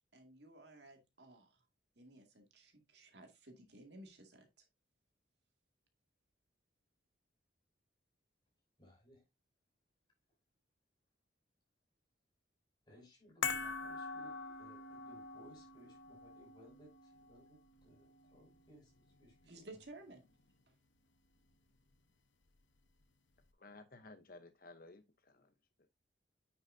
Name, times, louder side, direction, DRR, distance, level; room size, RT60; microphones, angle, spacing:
voice 1, 0.1-1.6 2.0-4.7 19.5-20.3 20.7-20.8, right 2 dB, 60° right, 2.1 m, -56 dB
voice 2, 8.8-9.2 12.8-19.6, equal, 25° left, 6.1 m, -62 dB
sound 1, 13.4-19.8 20.1-20.2, left 5 dB, 80° left, 0.9 m, -45 dB
voice 3, 23.6-25.5 25.8-25.9, left 2 dB, 50° left, 0.8 m, -56 dB
9.6 x 6.3 x 2.6 m
head